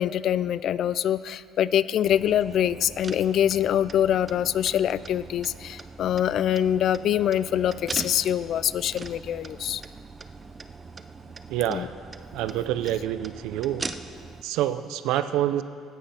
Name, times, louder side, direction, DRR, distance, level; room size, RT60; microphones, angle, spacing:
voice 1, 0.0-9.8 11.7-11.9, left 10 dB, 60° left, 17 dB, 0.3 m, -24 dB
sound 1, 2.0-14.4, right 4 dB, 30° right, 0.5 m, -41 dB
voice 2, 11.5-11.9 12.3-13.8 14.4-15.6, right 12 dB, 85° right, 11 dB, 0.5 m, -27 dB
16.5 x 6.5 x 5.7 m, 2.2 s
cardioid pair, 95°, 0 cm